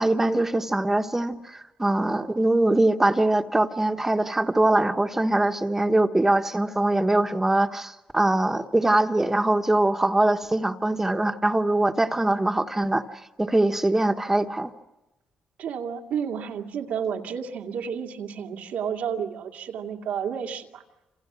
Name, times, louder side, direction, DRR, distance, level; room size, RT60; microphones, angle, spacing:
voice 1, 0.0-13.1 13.4-14.7, right 2 dB, 15° right, 6 dB, 1.3 m, -22 dB
voice 2, 15.6-20.8, right 7 dB, 90° right, 2 dB, 2.2 m, -31 dB
28.0 x 27.5 x 6.2 m, 1.0 s
cardioid pair, 100°, 3 cm